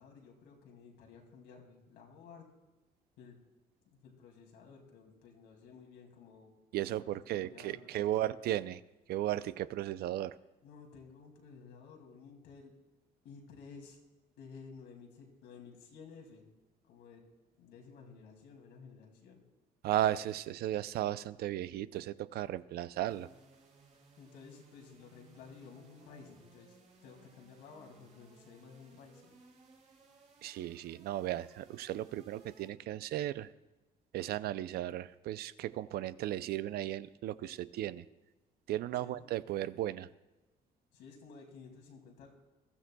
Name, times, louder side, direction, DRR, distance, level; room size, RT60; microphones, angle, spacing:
voice 1, 0.0-2.5 3.2-3.4 3.9-6.5 7.3-8.3 10.6-12.7 13.2-14.0 14.4-16.5 16.9-17.2 17.6-19.4 24.2-29.3 39.0-39.2 40.9-42.3, left 5 dB, 85° left, 1 dB, 2.5 m, -54 dB
voice 2, 6.7-8.8 9.1-10.4 19.8-23.3 30.4-33.5 34.1-38.1 38.7-40.1, right 13 dB, 70° right, 15 dB, 0.5 m, -35 dB
sound 1, 23.0-32.7, right 3 dB, 45° right, 2.8 m, -62 dB
21.5 x 13.5 x 2.3 m, 1.1 s
cardioid pair, 110°, 17 cm